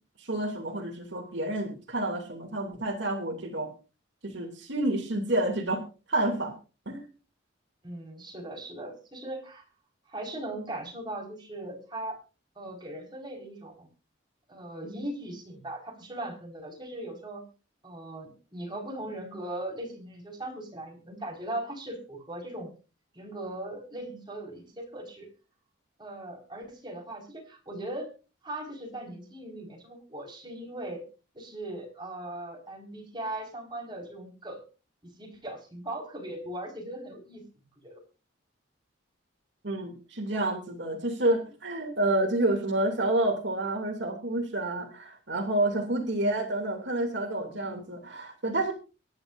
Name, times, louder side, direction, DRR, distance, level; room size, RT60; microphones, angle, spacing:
voice 1, 0.2-3.7 4.2-6.5 6.9-7.1 39.6-48.7, right 1 dB, 65° right, 4 dB, 2.7 m, -29 dB
voice 2, 7.8-9.6 10.1-12.2 12.5-13.9 14.5-17.4 17.8-22.7 23.1-25.3 26.0-28.1 28.4-31.0 31.3-34.6 35.2-37.4 37.8-38.0 46.0-46.3 47.5-47.8, right 1 dB, 25° right, 1 dB, 4.9 m, -39 dB
23.5 x 10.5 x 2.6 m, 0.32 s
head